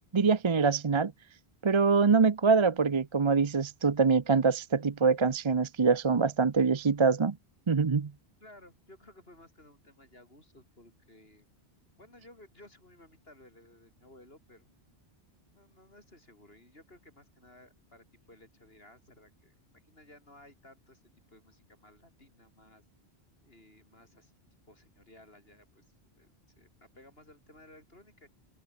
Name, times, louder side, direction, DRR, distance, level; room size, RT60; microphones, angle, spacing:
voice 1, 0.1-1.1 1.6-7.4 7.7-8.1, right 5 dB, 30° right, 0.6 m, -24 dB
voice 2, 8.4-11.5 12.0-14.7 15.5-21.0 21.3-22.8 23.4-24.3 24.7-28.3, left 1 dB, 65° left, 7.9 m, -57 dB
omnidirectional pair, 1.1 m